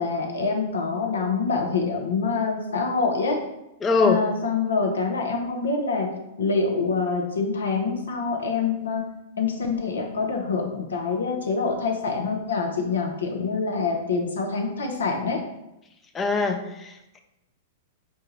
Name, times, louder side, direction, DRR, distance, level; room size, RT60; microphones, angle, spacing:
voice 1, 0.0-3.4 4.0-6.1 6.4-9.1 9.4-15.4, left 4 dB, 75° left, 2 dB, 0.7 m, -25 dB
voice 2, 3.8-4.2 16.1-17.2, left 4 dB, 20° left, 5 dB, 0.4 m, -23 dB
4.3 x 2.2 x 3.1 m, 0.89 s
figure-of-eight pair, 100°, 0 cm